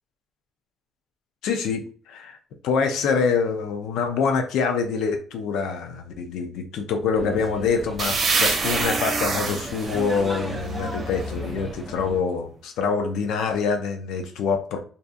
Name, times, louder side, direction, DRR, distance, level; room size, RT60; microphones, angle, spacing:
voice 1, 1.4-2.4 2.6-14.8, left 5 dB, 90° left, 6 dB, 0.4 m, -25 dB
sound 1, 7.1-12.2, right 1 dB, 5° right, 0.8 m, -34 dB
sound 2, 8.0-11.6, right 4 dB, 55° right, 0.7 m, -27 dB
2.6 x 2.3 x 2.4 m, 0.44 s
cardioid pair, 90°, 0 cm